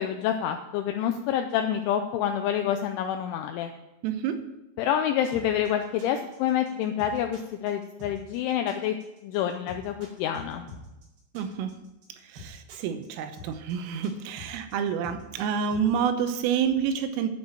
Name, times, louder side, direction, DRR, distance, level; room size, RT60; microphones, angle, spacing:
voice 1, 0.0-3.7 4.8-9.0 9.2-10.7, left 9 dB, 80° left, 5 dB, 2.8 m, -27 dB
voice 2, 4.0-4.4 11.3-11.7 12.2-17.3, right 7 dB, 80° right, 8 dB, 3.4 m, -28 dB
sound 1, 5.3-15.9, left 1 dB, 50° right, 5.8 m, -45 dB
12.0 x 5.7 x 8.7 m, 0.95 s
omnidirectional pair, 5.9 m